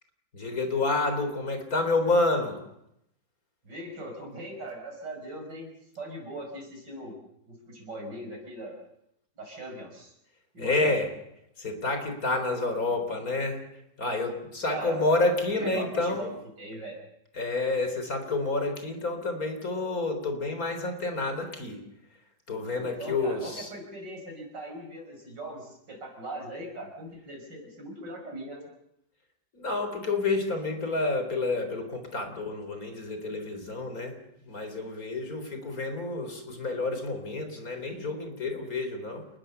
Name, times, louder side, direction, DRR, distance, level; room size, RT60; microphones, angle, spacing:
voice 1, 0.3-2.6 10.6-11.1 11.6-13.6 14.0-16.4 17.3-21.8 22.5-23.7 29.5-34.2 34.5-39.3, left 2 dB, 50° left, 6 dB, 4.5 m, -29 dB
voice 2, 3.6-5.7 6.0-7.2 7.5-8.7 9.4-10.1 10.5-10.9 14.7-15.0 15.5-16.3 16.6-17.0 22.8-28.7, right 1 dB, 65° right, 3 dB, 6.6 m, -39 dB
28.0 x 21.0 x 6.9 m, 0.79 s
omnidirectional pair, 2.0 m